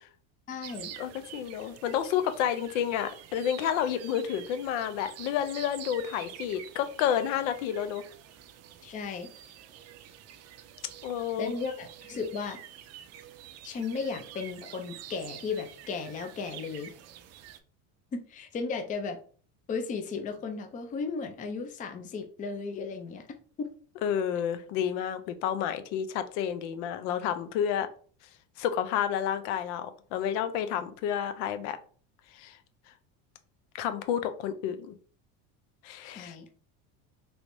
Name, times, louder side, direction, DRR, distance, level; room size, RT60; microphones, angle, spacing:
voice 1, 0.5-0.9 8.8-9.3 11.4-12.6 13.6-16.9 18.1-19.2 19.7-23.2 23.6-23.7 36.0-36.5, left 4 dB, 20° left, 6 dB, 0.4 m, -35 dB
sound 1, 0.6-17.6, right 11 dB, 45° right, 0.4 m, -48 dB
voice 2, 1.0-8.0 11.0-11.5 24.0-27.9 28.6-31.8 32.3-32.6 33.8-34.9 35.8-36.3, left 9 dB, 85° left, 10 dB, 0.6 m, -30 dB
3.2 x 3.1 x 2.6 m, 0.43 s
cardioid pair, 130°, 37 cm